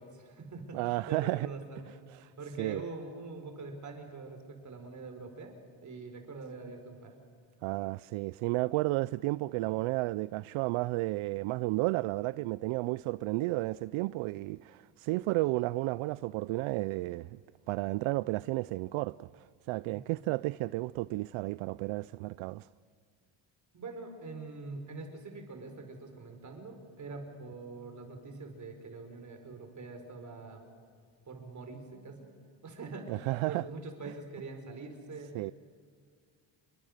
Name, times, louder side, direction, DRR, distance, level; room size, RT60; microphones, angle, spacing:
voice 1, 0.0-5.5 5.8-7.1 19.9-20.1 23.7-30.6 31.2-32.3 32.6-35.4, right 3 dB, 35° right, 4.8 m, -44 dB
voice 2, 0.7-1.5 2.1-2.3 2.6-2.8 7.6-17.4 17.7-22.7 33.1-33.6 35.3-35.5, right 20 dB, 75° right, 0.5 m, -32 dB
27.5 x 23.5 x 6.6 m
cardioid pair, 110°, 50 cm